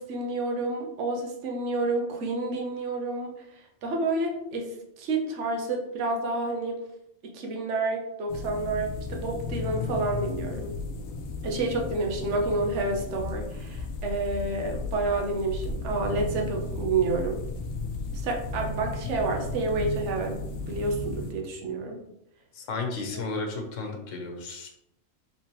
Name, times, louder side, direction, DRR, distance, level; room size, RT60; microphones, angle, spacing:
voice 1, 0.0-3.4 3.8-6.8 7.3-10.7 11.4-17.4 18.1-22.0 23.1-23.2, right 2 dB, 60° right, 1 dB, 1.1 m, -29 dB
sound 1, 8.3-21.3, left 3 dB, 90° left, 1.1 m, -34 dB
voice 2, 22.6-24.7, left 3 dB, 65° left, 2 dB, 1.2 m, -33 dB
4.2 x 4.0 x 3.0 m, 0.79 s
omnidirectional pair, 1.4 m